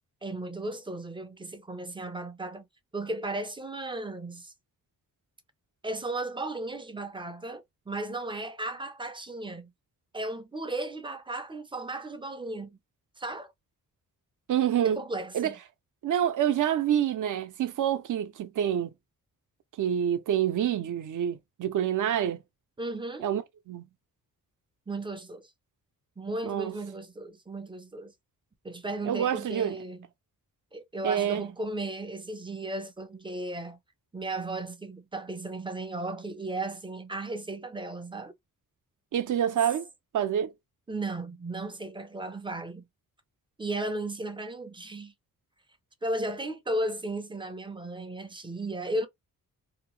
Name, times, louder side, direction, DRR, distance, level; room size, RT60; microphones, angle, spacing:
voice 1, 0.2-2.6 2.9-4.5 5.8-9.7 10.1-12.8 13.2-13.5 14.8-15.5 22.8-23.3 24.9-25.5 26.2-28.1 28.6-30.1 30.7-33.8 34.1-38.3 40.9-42.8 43.6-45.1 46.0-49.1, right 2 dB, 15° right, 0.5 m, -35 dB
voice 2, 14.5-15.0 15.3-15.5 16.0-18.9 19.8-22.4 23.2-23.8 26.4-26.8 29.0-29.8 31.0-31.5 39.1-39.9 40.1-40.5, right 10 dB, 60° right, 0.6 m, -27 dB
2.8 x 2.1 x 3.0 m
wide cardioid pair, 115°, 35 cm